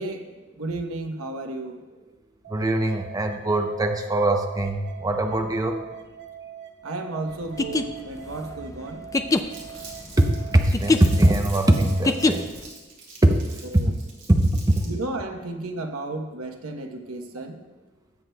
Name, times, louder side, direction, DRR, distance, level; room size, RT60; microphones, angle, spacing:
voice 1, 0.0-1.8 6.8-9.0 13.7-13.9 14.8-17.6, right 2 dB, 85° right, 5 dB, 1.0 m, -33 dB
sound 1, 2.4-12.5, right 10 dB, 55° right, 1.1 m, -43 dB
voice 2, 2.5-5.8 10.2-12.5 13.2-13.4 13.7-13.8 14.3-14.8, right 1 dB, 15° right, 3 dB, 0.6 m, -21 dB
sound 2, 7.4-12.7, left 3 dB, 15° left, 0.3 m, -25 dB
Crumpling crinkling, 9.5-15.0, right 4 dB, 40° right, 2.5 m, -44 dB
19.0 x 7.7 x 2.2 m, 1.2 s
head